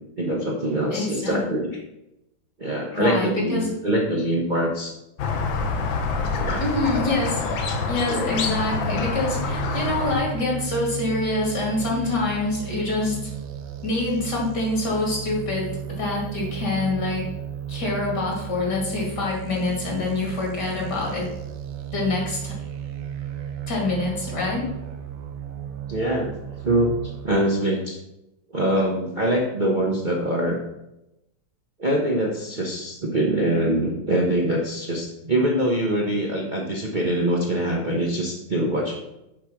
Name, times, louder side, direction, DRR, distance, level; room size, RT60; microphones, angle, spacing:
voice 1, 0.2-1.8 2.6-4.9 6.3-6.7 8.1-8.4 11.9-12.0 25.9-28.0 28.5-30.6 31.8-39.0, right 1 dB, 35° right, -2 dB, 0.8 m, -24 dB
voice 2, 0.9-1.4 2.9-3.7 6.6-7.4 7.9-13.3 13.8-17.3 17.7-21.3 21.9-22.5 23.7-24.7, left 2 dB, 60° left, -2 dB, 2.9 m, -26 dB
Squeak, 5.2-10.2, left 4 dB, 85° left, 1.6 m, -26 dB
sound 1, 8.7-27.3, right 9 dB, 70° right, 1.3 m, -34 dB
6.5 x 4.9 x 5.9 m, 0.89 s
omnidirectional pair, 2.0 m